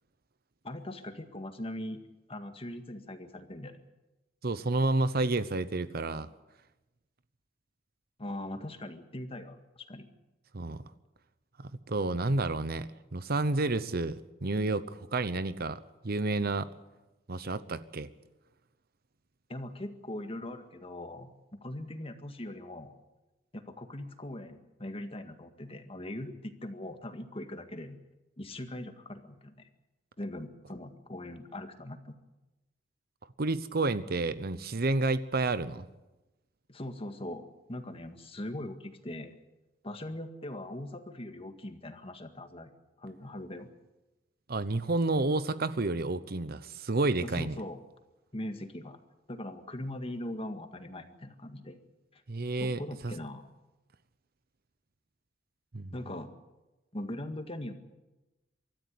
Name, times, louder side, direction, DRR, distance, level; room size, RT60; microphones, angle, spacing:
voice 1, 0.6-2.0 2.3-3.8 8.2-10.1 19.5-22.9 23.5-28.0 28.4-29.7 30.2-32.2 36.7-39.3 39.8-42.7 43.0-43.7 47.2-47.8 48.3-49.0 49.3-51.8 52.1-52.2 52.6-53.5 55.9-56.4 56.9-57.7, left 1 dB, 30° left, 7 dB, 1.9 m, -41 dB
voice 2, 4.4-6.3 10.5-10.8 11.6-16.7 17.3-18.1 33.4-35.9 44.5-47.6 52.3-53.1 55.7-55.9, right 2 dB, 55° right, 14 dB, 0.9 m, -30 dB
24.5 x 13.5 x 9.6 m, 1.0 s
head